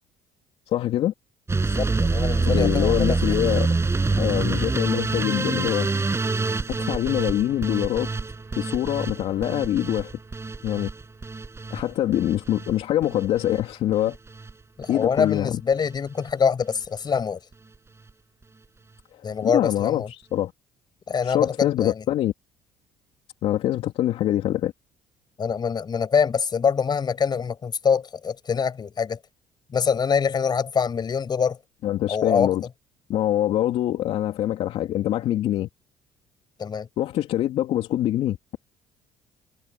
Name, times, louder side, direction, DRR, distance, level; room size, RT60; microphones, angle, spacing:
voice 1, 0.7-1.1 2.4-3.7 4.1-5.9 6.7-8.1 8.6-10.1 10.6-10.9 11.7-14.2 14.9-15.5 19.4-20.5 21.2-22.3 23.4-24.7 31.8-32.6 33.1-35.7 37.0-38.6, left 12 dB, 65° left, 3.0 m, -24 dB
sound 1, 1.5-13.6 13.9-14.5 14.8-15.4 15.7-16.0 16.3-16.4 16.6-16.7, right 3 dB, 25° right, 7.0 m, -26 dB
voice 2, 1.6-3.4 14.8-17.4 19.2-20.1 21.1-22.0 25.4-29.2 29.7-31.6 32.1-32.5 36.6-36.9, left 6 dB, 40° left, 6.2 m, -24 dB
hypercardioid pair, 65°, 11 cm